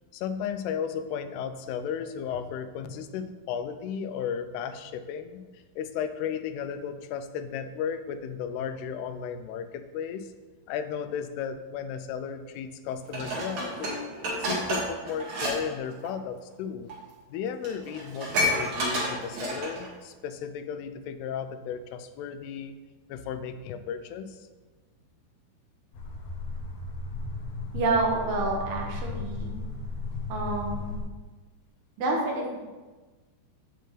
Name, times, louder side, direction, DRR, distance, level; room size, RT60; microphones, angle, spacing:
voice 1, 0.1-10.3 10.7-14.1 14.4-16.9 17.3-22.8 23.1-24.5, left 7 dB, 90° left, 10 dB, 2.6 m, -34 dB
Dishes pots and pans, 13.1-15.6 15.9-16.1 16.9-17.0 17.3-17.4 17.6-19.9 20.3-20.4, equal, 65° right, 3.4 m, -30 dB
sound 1, 25.9-31.0, left 3 dB, 70° left, 1.7 m, -35 dB
voice 2, 27.7-29.5 30.3-31.0 32.0-32.6, right 3 dB, 80° right, -1 dB, 3.3 m, -28 dB
7.7 x 7.7 x 3.3 m, 1.3 s
omnidirectional pair, 4.5 m